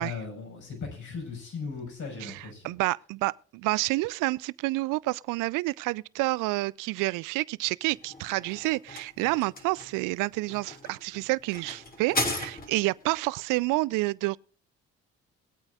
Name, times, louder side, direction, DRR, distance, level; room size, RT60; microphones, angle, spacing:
voice 1, 0.0-2.7, left 5 dB, 60° left, 6.0 m, -37 dB
voice 2, 2.2-14.4, right 21 dB, 70° right, 0.5 m, -29 dB
sound 1, 7.9-13.0, left 2 dB, 25° left, 3.0 m, -36 dB
21.0 x 8.8 x 2.5 m
hypercardioid pair, 55°, 33 cm